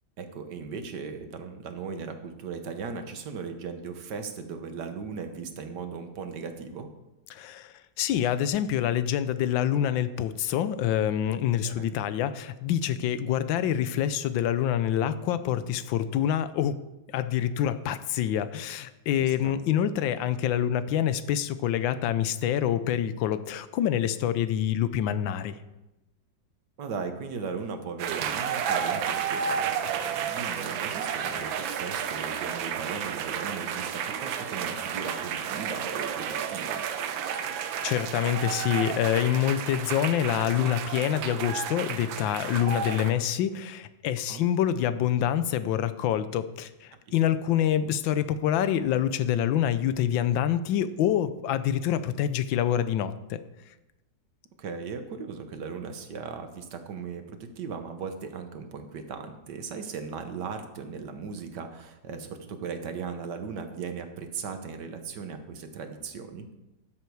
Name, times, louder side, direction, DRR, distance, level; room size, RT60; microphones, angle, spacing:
voice 1, 0.2-6.9 11.6-12.0 19.2-19.6 26.8-36.8 44.3-44.4 54.6-66.5, right 5 dB, 65° right, 7 dB, 1.5 m, -38 dB
voice 2, 7.3-7.7 8.0-16.8 17.1-25.6 37.8-53.4, left 10 dB, 80° left, 13 dB, 1.4 m, -26 dB
sound 1, 28.0-43.1, right 8 dB, 85° right, 1.5 m, -32 dB
12.5 x 7.6 x 4.7 m, 0.98 s
omnidirectional pair, 2.1 m